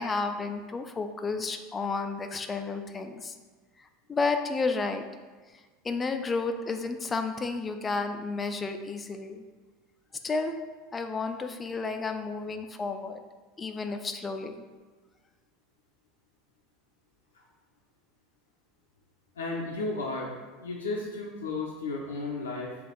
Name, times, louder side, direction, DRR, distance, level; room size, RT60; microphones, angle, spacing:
voice 1, 0.0-3.3 4.1-5.0 5.8-9.4 10.2-10.6 10.9-13.2 13.6-14.5, left 4 dB, 25° left, 6 dB, 0.3 m, -31 dB
voice 2, 19.4-22.8, left 3 dB, 80° left, -3 dB, 0.5 m, -34 dB
3.3 x 2.4 x 3.8 m, 1.4 s
hypercardioid pair, 80°, 0 cm